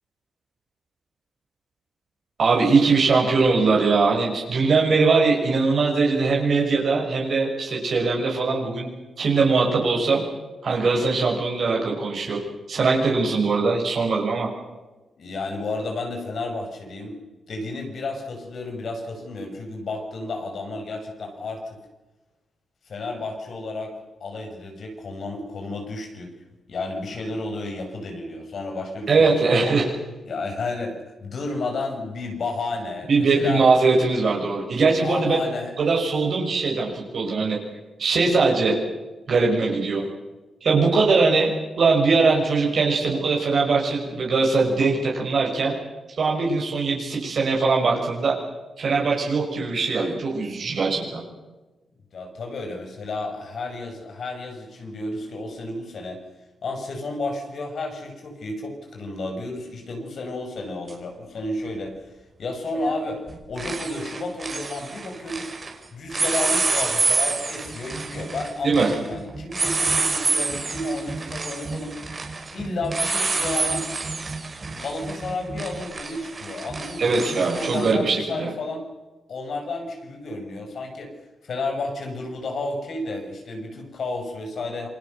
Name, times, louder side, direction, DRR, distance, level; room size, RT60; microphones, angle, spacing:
voice 1, 2.4-8.9 9.2-10.2 10.6-12.4 12.7-14.5 29.1-29.9 33.1-35.4 35.8-37.6 38.0-38.8 39.3-40.0 40.6-41.5 41.8-45.8 46.2-48.4 48.8-51.2 68.6-68.9 77.0-78.5, right 4 dB, 55° right, -1 dB, 6.1 m, -21 dB
voice 2, 15.2-17.2 17.5-21.7 22.9-23.9 24.2-26.3 26.7-29.7 30.3-33.6 35.0-35.7 52.1-56.2 56.6-61.9 62.4-63.2 63.5-65.5 65.9-72.0 72.5-73.9 74.6-78.8 79.3-81.1 81.4-84.9, left 2 dB, 55° left, 3 dB, 6.5 m, -32 dB
sound 1, 60.9-61.0 62.7-63.0 63.3-65.7 66.1-77.9, right 3 dB, 30° right, 4.8 m, -28 dB
28.0 x 24.0 x 6.7 m, 1.1 s
wide cardioid pair, 125°, 0 cm